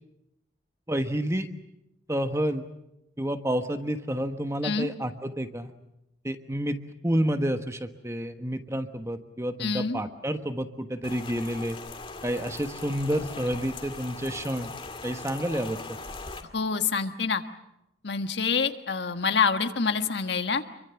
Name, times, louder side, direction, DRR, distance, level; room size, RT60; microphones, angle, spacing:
voice 1, 0.9-1.5 2.1-2.6 3.2-5.7 6.2-6.8 7.0-11.8 12.2-14.7 15.0-15.8, equal, 15° right, 7 dB, 1.3 m, -29 dB
voice 2, 9.6-10.0 16.5-17.4 18.0-20.6, left 5 dB, 70° left, 7 dB, 1.5 m, -26 dB
Rain, 11.0-16.4, left 3 dB, 30° left, 2.1 m, -40 dB
27.5 x 23.5 x 7.1 m, 0.87 s
head